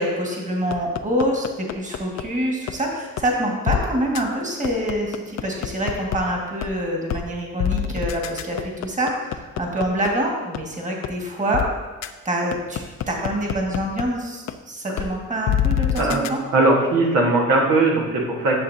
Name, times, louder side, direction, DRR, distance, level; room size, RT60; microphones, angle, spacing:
voice 1, 0.0-11.6 12.3-16.4, right 1 dB, 25° right, 0 dB, 1.8 m, -26 dB
sound 1, 0.7-2.2 2.7-2.8 3.2-3.3 3.7-3.8 4.1-4.2 4.6-6.2 6.6-6.7 7.1-7.2 7.6-10.1 10.5-10.6 11.0-11.1 11.5-11.7 12.0-12.1 12.5-14.0 14.5-14.6 15.0-15.1 15.5-16.3, left 10 dB, 60° left, 0.5 m, -24 dB
voice 2, 16.5-18.6, right 2 dB, 85° right, -2 dB, 1.6 m, -19 dB
11.0 x 6.7 x 2.8 m, 1.3 s
cardioid pair, 90°, 30 cm